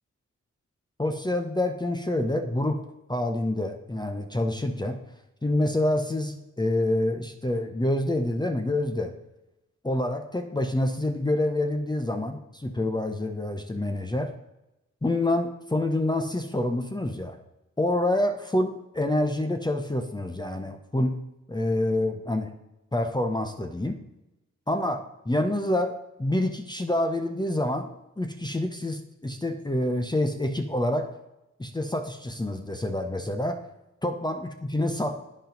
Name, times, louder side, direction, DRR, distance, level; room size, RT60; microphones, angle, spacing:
voice 1, 1.0-2.8 3.1-5.0 5.4-9.1 9.8-14.3 15.0-17.4 17.8-21.2 21.5-22.5 22.9-24.0 24.7-25.9 26.2-27.9 28.2-31.1 31.6-33.6 34.0-35.3, left 1 dB, 15° left, 6 dB, 0.8 m, -27 dB
9.1 x 5.4 x 5.1 m, 0.94 s
cardioid pair, 55°, 30 cm